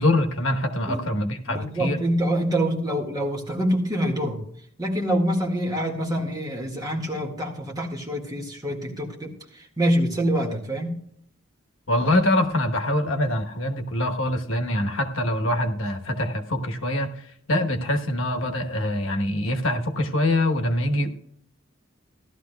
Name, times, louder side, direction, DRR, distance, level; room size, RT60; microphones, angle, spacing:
voice 1, 0.0-2.0 11.9-17.2 17.5-21.1, left 1 dB, 80° left, 5 dB, 1.1 m, -24 dB
voice 2, 1.5-4.4 4.8-11.0, equal, 20° right, -1 dB, 1.9 m, -26 dB
16.0 x 12.0 x 2.3 m, 0.68 s
head